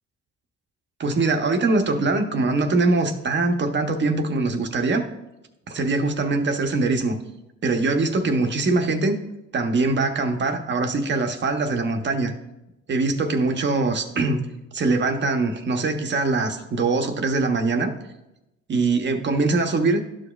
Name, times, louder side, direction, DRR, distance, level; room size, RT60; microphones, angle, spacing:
voice 1, 1.0-5.0 5.7-7.2 7.6-9.2 9.5-12.3 12.9-14.4 14.7-17.9 18.7-20.0, right 3 dB, 40° right, 5 dB, 0.9 m, -22 dB
12.5 x 5.0 x 2.3 m, 0.91 s
cardioid pair, 115°, 29 cm